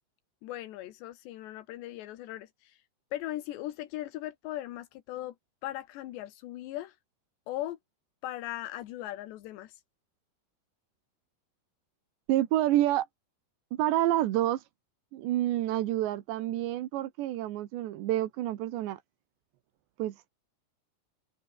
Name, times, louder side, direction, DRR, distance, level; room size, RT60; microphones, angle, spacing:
voice 1, 0.4-2.8 3.1-5.4 5.6-7.0 7.5-7.8 8.2-9.8, left 14 dB, 85° left, 3.5 m, -38 dB
voice 2, 12.3-13.1 13.7-14.7 15.1-19.0 20.0-20.3, right 14 dB, 90° right, 3.7 m, -28 dB
omnidirectional pair, 4.9 m